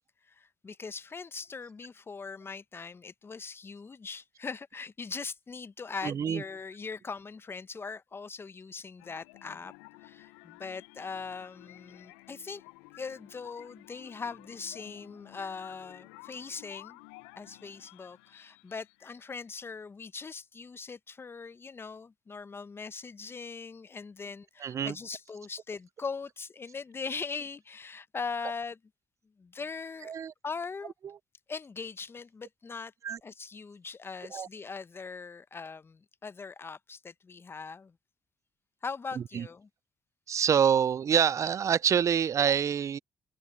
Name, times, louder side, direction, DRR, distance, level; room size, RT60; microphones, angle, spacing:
voice 1, 0.3-9.7 10.0-12.6 13.0-17.0 17.4-28.8 29.4-30.1 30.4-30.9 31.5-32.9 33.2-37.9 38.8-39.7, left 5 dB, 35° left, 1.0 m, -40 dB
voice 2, 6.0-6.4 24.6-24.9 30.1-30.3 33.0-33.2 34.3-34.5 39.2-39.5 40.3-43.0, right 8 dB, 50° right, 0.5 m, -26 dB
sound 1, 9.0-19.6, left 24 dB, 80° left, 0.8 m, -53 dB
open air
hypercardioid pair, 45°, 7 cm